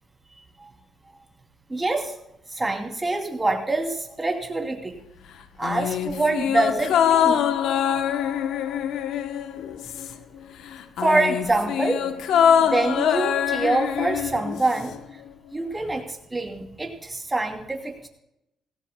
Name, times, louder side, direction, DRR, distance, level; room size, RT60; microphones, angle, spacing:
voice 1, 1.7-2.1 2.5-5.0 5.6-7.5 11.0-12.0 12.6-15.0 15.5-18.1, right 2 dB, 20° right, 3 dB, 2.9 m, -25 dB
sound 1, 5.6-10.4 10.7-15.0 15.3-15.4, left 9 dB, 80° left, 0.9 m, -24 dB
18.0 x 16.5 x 2.3 m, 0.85 s
cardioid pair, 90°, 0 cm